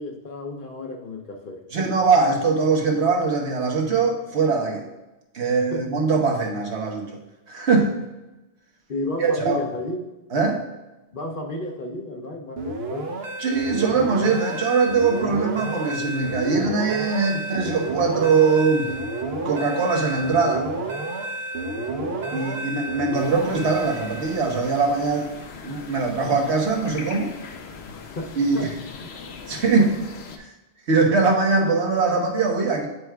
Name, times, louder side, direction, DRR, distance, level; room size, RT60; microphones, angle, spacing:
voice 1, 0.0-1.9 5.4-5.9 8.9-10.0 11.1-13.2 21.7-22.3 27.9-28.7 29.0-29.1 29.8-29.9, left 2 dB, 55° left, 1 dB, 0.9 m, -33 dB
voice 2, 1.7-4.8 5.3-7.1 7.5-7.9 9.2-9.6 10.3-10.6 13.4-18.9 19.4-20.7 22.3-25.3 25.6-27.3 28.4-28.7 29.5-29.9 30.4-30.5 30.9-32.9, right 4 dB, 85° right, 2 dB, 1.3 m, -21 dB
sound 1, 12.6-24.7, right 2 dB, 70° right, 1.0 m, -30 dB
sound 2, 23.1-30.4, left 5 dB, 80° left, 0.9 m, -40 dB
9.4 x 4.5 x 2.3 m, 1.1 s
omnidirectional pair, 1.1 m